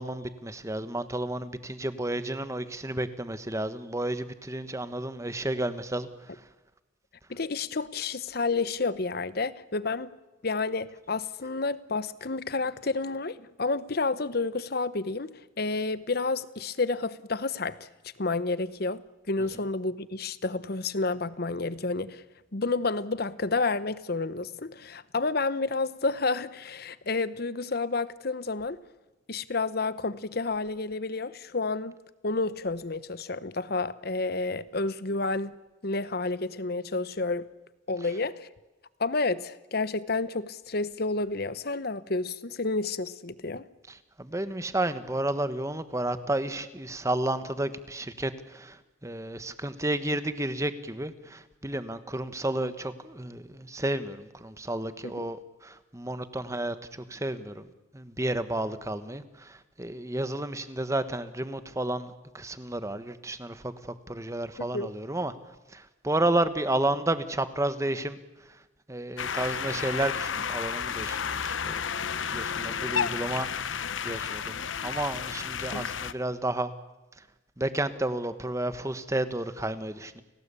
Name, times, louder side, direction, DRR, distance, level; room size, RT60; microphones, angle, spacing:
voice 1, 0.0-6.1 43.9-57.6 57.9-65.3 65.7-68.2 68.9-71.8 72.3-76.7 77.6-80.2, right 1 dB, 15° right, 1.3 m, -31 dB
voice 2, 7.3-10.1 10.4-17.9 18.2-19.0 19.3-22.2 22.5-28.8 29.3-31.9 32.2-35.5 35.8-37.5 37.9-38.5 39.0-43.6 55.0-55.3 64.7-64.9 75.7-75.9, left 3 dB, 55° left, 1.0 m, -30 dB
sound 1, 69.2-76.1, left 7 dB, 90° left, 0.9 m, -32 dB
30.0 x 18.5 x 8.4 m
head